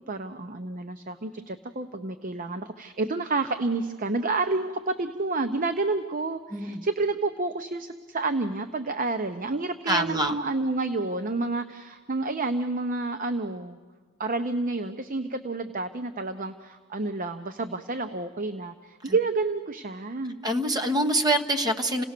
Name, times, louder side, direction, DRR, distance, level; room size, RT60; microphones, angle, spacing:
voice 1, 0.1-13.8 14.2-20.3, right 3 dB, 40° right, 8 dB, 0.7 m, -29 dB
voice 2, 6.5-6.9 9.9-10.4 19.0-19.2 20.4-22.0, right 1 dB, 20° right, 5 dB, 1.2 m, -25 dB
28.5 x 17.5 x 6.7 m, 1.5 s
head